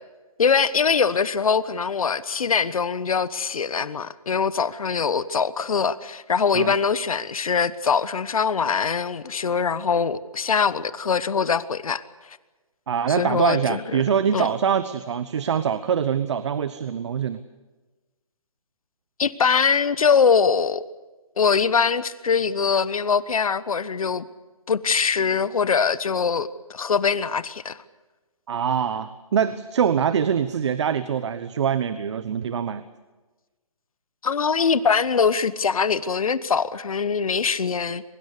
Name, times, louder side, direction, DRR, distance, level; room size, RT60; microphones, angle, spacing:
voice 1, 0.4-12.0 12.3-12.4 13.2-14.0 14.3-14.5 19.2-20.8 21.4-24.2 24.7-27.8 34.2-38.0, left 6 dB, 70° left, 16 dB, 1.2 m, -22 dB
voice 2, 12.9-17.4 28.5-32.8, right 7 dB, 50° right, 13 dB, 1.1 m, -24 dB
23.0 x 22.5 x 6.8 m, 1.2 s
hypercardioid pair, 150°, 19 cm